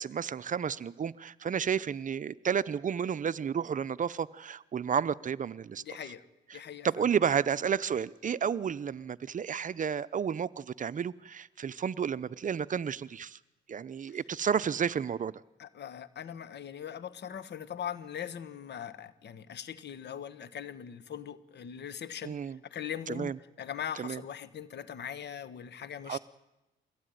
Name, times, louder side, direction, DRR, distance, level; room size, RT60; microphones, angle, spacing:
voice 1, 0.0-5.8 6.5-6.6 6.8-13.4 13.7-15.3 22.2-22.6 23.1-23.4 24.0-24.2 26.1-26.2, right 7 dB, 40° right, 0.7 m, -31 dB
voice 2, 5.8-6.2 6.5-7.1 14.1-14.2 15.6-26.2, left 9 dB, 60° left, 1.5 m, -41 dB
23.0 x 17.0 x 9.3 m
cardioid pair, 90°, 20 cm